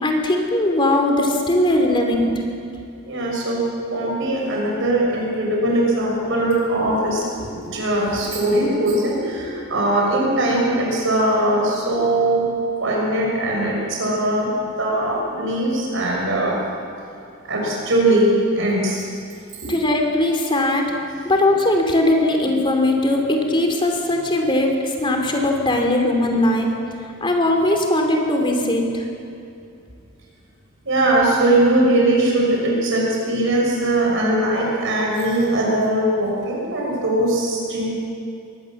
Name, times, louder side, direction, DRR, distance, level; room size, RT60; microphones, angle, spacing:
voice 1, 0.0-2.4 19.7-20.9 21.2-26.7 27.2-29.0, left 1 dB, 25° left, 3 dB, 3.0 m, -19 dB
voice 2, 3.1-3.6 3.9-12.5 12.8-16.6 17.4-19.0 19.6-19.7 30.8-38.0, right 1 dB, 65° right, -2 dB, 5.8 m, -20 dB
23.0 x 19.0 x 7.2 m, 2.5 s
head